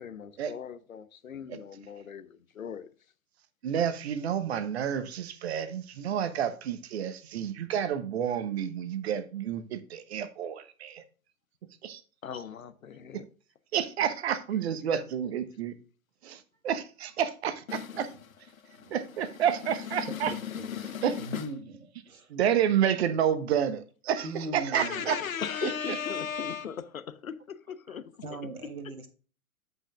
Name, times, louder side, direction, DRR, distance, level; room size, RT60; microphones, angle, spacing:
voice 1, 0.0-2.9 12.2-13.2 17.7-18.3 18.5-21.5 24.7-28.1, left 7 dB, 65° left, 1.0 m, -38 dB
voice 2, 3.6-11.0 11.8-12.0 13.7-15.7 16.2-17.6 18.0-18.1 18.9-20.3 21.0-21.1 22.3-25.2 25.6-25.7, right 9 dB, 45° right, 1.1 m, -29 dB
voice 3, 20.1-20.8 21.2-21.7 22.0-22.3 24.2-25.1 27.9-29.1, right 2 dB, 70° right, 1.7 m, -40 dB
13.5 x 5.6 x 2.4 m
figure-of-eight pair, 110°, 44 cm